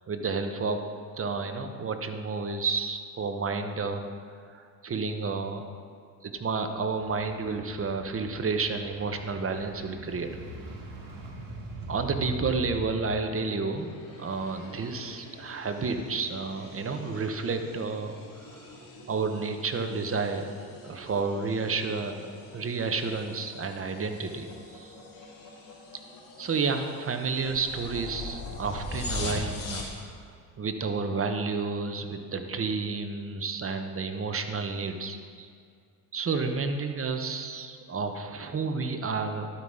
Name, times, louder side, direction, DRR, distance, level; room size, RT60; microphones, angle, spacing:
voice 1, 0.1-0.8 1.2-4.0 4.5-5.6 6.2-10.3 11.9-18.8 19.1-20.5 20.8-22.1 22.5-24.9 26.4-30.1 30.6-35.5 36.1-39.5, right 4 dB, 30° right, 6 dB, 1.0 m, -31 dB
sound 1, 7.0-13.0, right 1 dB, 50° right, 2.2 m, -41 dB
sound 2, 13.7-30.0, left 2 dB, 50° left, 2.6 m, -42 dB
12.0 x 5.6 x 5.0 m, 2.2 s
supercardioid pair, 75°, 43 cm